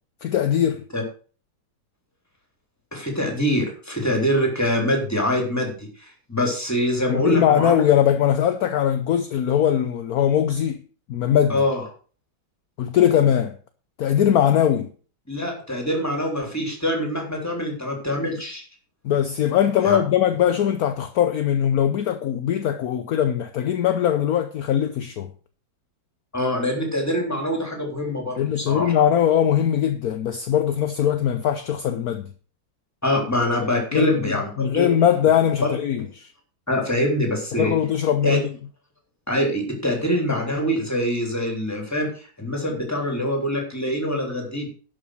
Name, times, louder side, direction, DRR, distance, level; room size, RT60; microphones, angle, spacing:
voice 1, 0.2-0.8 7.1-10.8 11.1-11.6 12.8-13.5 14.0-14.9 19.0-25.3 28.4-32.3 33.8-36.3 37.5-38.5, left 9 dB, 60° left, 1.0 m, -21 dB
voice 2, 2.9-7.8 11.5-11.8 15.3-18.6 19.8-20.0 26.3-28.9 33.0-34.9 35.6-35.7 36.7-37.7 38.2-38.4 39.3-44.7, equal, 10° left, 3.4 m, -24 dB
11.5 x 6.2 x 6.4 m
omnidirectional pair, 2.2 m